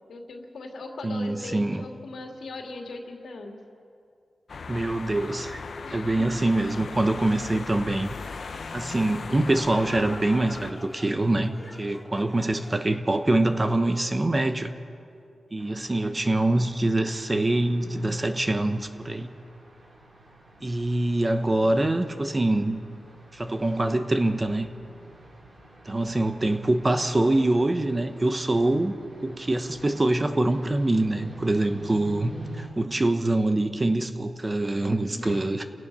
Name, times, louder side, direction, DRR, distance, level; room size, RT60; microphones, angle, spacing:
voice 1, 0.1-3.6 5.8-6.3 35.1-35.5, left 2 dB, 80° left, 2 dB, 2.6 m, -39 dB
voice 2, 1.0-1.8 4.7-5.6 5.9-11.5 11.8-14.7 15.5-19.3 20.6-22.8 23.3-24.7 25.8-28.9 29.2-32.3 32.6-35.6, right 2 dB, 25° right, 8 dB, 1.1 m, -24 dB
sound 1, 4.5-10.7, left 5 dB, 60° left, 0.9 m, -38 dB
sound 2, 9.2-14.8, left 2 dB, 25° left, 3.1 m, -45 dB
sound 3, 15.6-32.7, right 2 dB, 55° right, 6.5 m, -48 dB
30.0 x 17.5 x 5.6 m, 2.4 s
wide cardioid pair, 115°, 0 cm